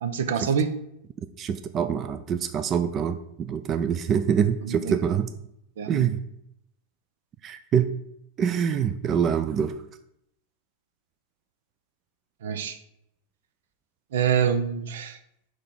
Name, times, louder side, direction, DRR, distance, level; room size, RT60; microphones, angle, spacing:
voice 1, 0.0-0.7 4.6-4.8 5.8-6.1 12.4-12.8 14.1-15.2, right 7 dB, 85° right, 10 dB, 0.7 m, -26 dB
voice 2, 1.4-5.3 5.9-6.2 7.4-7.9 8.4-9.7, right 8 dB, 25° right, 10 dB, 0.3 m, -25 dB
6.3 x 3.3 x 5.5 m, 0.76 s
supercardioid pair, 165°, 0 cm